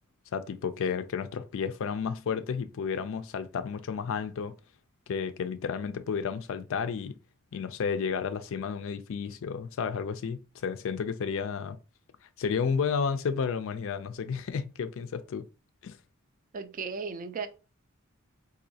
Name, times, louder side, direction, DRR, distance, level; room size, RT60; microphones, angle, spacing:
voice 1, 0.3-4.5 5.1-7.2 7.5-11.8 12.4-15.4 15.8-16.0, left 6 dB, 65° left, 0.4 m, -32 dB
voice 2, 16.5-17.5, right 5 dB, 40° right, 0.4 m, -35 dB
3.9 x 2.6 x 2.7 m
head